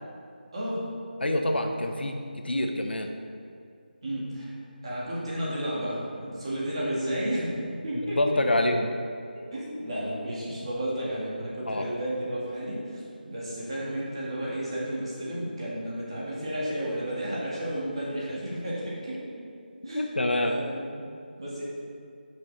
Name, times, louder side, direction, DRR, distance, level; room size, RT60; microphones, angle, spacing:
voice 1, 0.5-0.9 4.0-4.6 4.8-8.6 9.5-19.5 19.8-20.1 20.4-21.0 21.4-21.6, equal, 35° right, -7 dB, 1.8 m, -32 dB
voice 2, 1.2-2.2 2.4-3.1 8.2-8.9 11.7-11.9 19.9-20.5, left 1 dB, 85° left, 4 dB, 0.9 m, -26 dB
7.5 x 6.2 x 4.0 m, 2.4 s
figure-of-eight pair, 175°, 5 cm